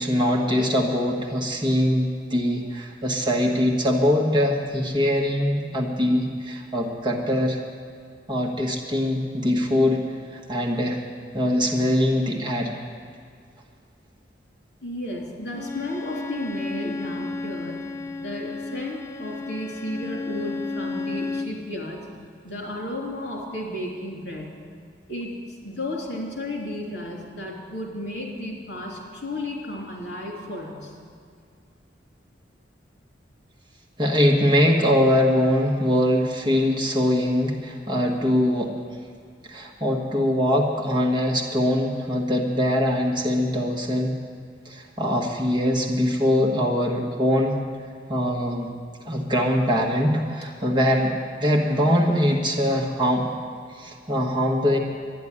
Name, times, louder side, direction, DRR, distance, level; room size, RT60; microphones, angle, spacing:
voice 1, 0.0-7.6 8.3-10.0 10.3-11.0 11.3-12.8 34.0-38.8 39.5-44.2 44.6-47.6 48.1-48.7 49.0-51.1 51.4-53.3 53.7-54.8, left 1 dB, 25° right, 0 dB, 1.4 m, -22 dB
voice 2, 14.8-17.9 18.2-22.0 22.4-24.5 25.1-31.0, left 1 dB, 65° left, -2 dB, 3.4 m, -33 dB
Bowed string instrument, 15.5-21.6, left 3 dB, 15° left, 0.4 m, -33 dB
12.0 x 10.5 x 10.0 m, 2.1 s
head